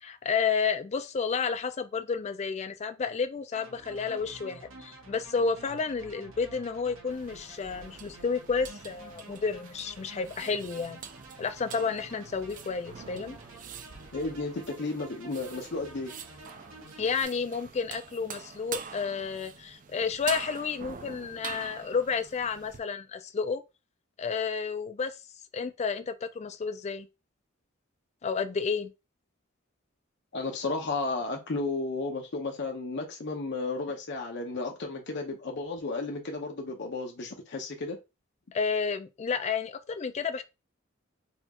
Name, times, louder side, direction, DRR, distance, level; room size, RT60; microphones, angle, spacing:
voice 1, 0.0-11.0 11.4-13.4 17.0-23.6 24.2-25.2 25.5-27.1 28.2-28.9 38.5-40.4, left 5 dB, 35° left, 0.4 m, -31 dB
sound 1, 3.5-17.2, right 2 dB, 80° right, 0.9 m, -50 dB
sound 2, 7.1-22.8, right 7 dB, 40° right, 0.4 m, -45 dB
voice 2, 14.1-16.1 30.3-38.0, left 3 dB, 60° left, 0.7 m, -33 dB
4.1 x 2.4 x 2.9 m
head